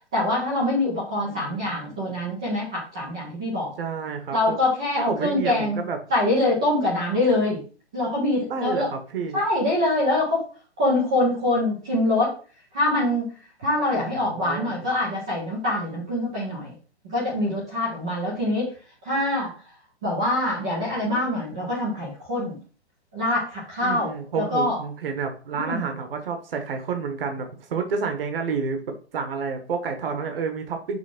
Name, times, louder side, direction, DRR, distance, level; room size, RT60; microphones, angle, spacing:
voice 1, 0.1-3.7 4.3-5.8 6.1-7.6 7.9-8.9 9.3-10.4 10.8-12.3 12.7-13.2 13.6-16.7 17.1-18.7 19.0-19.5 20.0-22.6 23.1-24.8 25.5-25.8, left 1 dB, 5° right, -5 dB, 0.4 m, -24 dB
voice 2, 1.2-2.1 3.8-4.6 5.1-6.0 8.5-9.4 13.9-14.7 23.8-28.8 29.1-31.0, right 5 dB, 55° right, 5 dB, 1.3 m, -30 dB
6.2 x 3.4 x 5.8 m, 0.37 s
hypercardioid pair, 160°, 33 cm